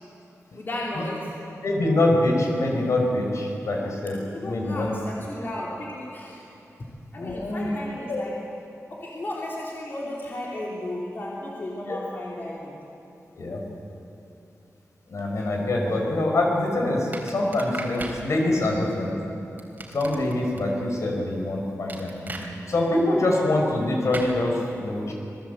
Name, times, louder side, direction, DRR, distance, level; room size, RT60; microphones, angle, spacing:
voice 1, 0.5-1.3 4.3-6.4 7.1-8.4 8.9-12.7 18.6-18.7, left 1 dB, 40° left, -5 dB, 3.4 m, -34 dB
voice 2, 1.6-4.9 7.2-7.7 8.1-8.2 11.9-12.0 13.4-13.6 15.1-19.1 19.9-22.3 22.7-25.1, left 1 dB, 65° left, 0 dB, 5.2 m, -24 dB
sound 1, 17.1-18.2 19.6-20.6 21.9-22.5 24.1-24.3, right 2 dB, 35° right, 3.4 m, -36 dB
27.0 x 20.0 x 8.1 m, 2.8 s
wide cardioid pair, 170°, 5 cm